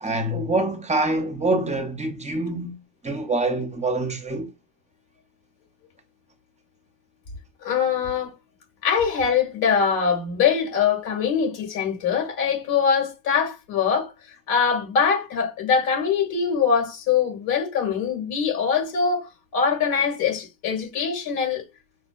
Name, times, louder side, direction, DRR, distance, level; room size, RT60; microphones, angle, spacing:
voice 1, 0.0-2.8 3.0-4.5, right 2 dB, 20° right, 0.6 m, -25 dB
voice 2, 7.6-8.3 8.8-21.6, left 6 dB, 80° left, 2.1 m, -23 dB
5.9 x 2.1 x 2.5 m
supercardioid pair, 100°, 37 cm